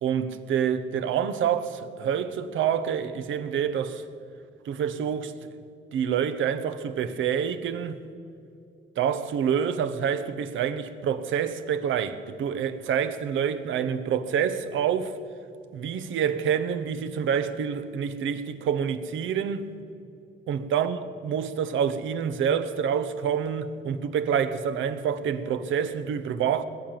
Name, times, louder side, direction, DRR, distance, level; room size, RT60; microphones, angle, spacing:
voice 1, 0.0-4.0 4.6-5.3 5.9-8.0 9.0-15.1 15.7-19.7 20.5-26.6, right 8 dB, 75° right, 1.0 m, -27 dB
20.5 x 9.1 x 7.6 m
cardioid pair, 90°, 20 cm